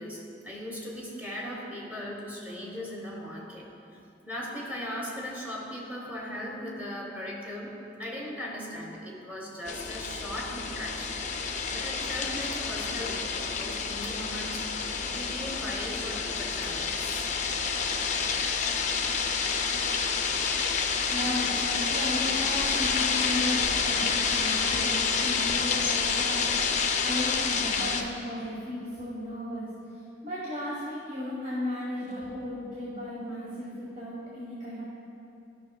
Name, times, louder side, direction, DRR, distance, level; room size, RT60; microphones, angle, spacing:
voice 1, 0.0-4.0 4.2-7.7 8.0-11.2 11.7-17.3, equal, 10° right, -4 dB, 1.2 m, -38 dB
sound 1, 9.6-28.0, left 5 dB, 45° left, 0.5 m, -28 dB
voice 2, 21.1-34.8, left 1 dB, 45° right, -8 dB, 1.4 m, -35 dB
12.5 x 5.8 x 2.3 m, 2.6 s
head